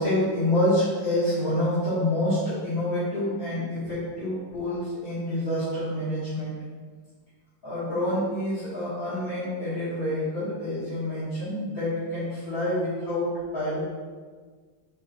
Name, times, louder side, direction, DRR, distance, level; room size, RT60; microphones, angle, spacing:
voice 1, 0.0-6.5 7.6-13.8, left 1 dB, 50° left, -14 dB, 2.6 m, -27 dB
7.4 x 6.2 x 2.7 m, 1.5 s
omnidirectional pair, 2.0 m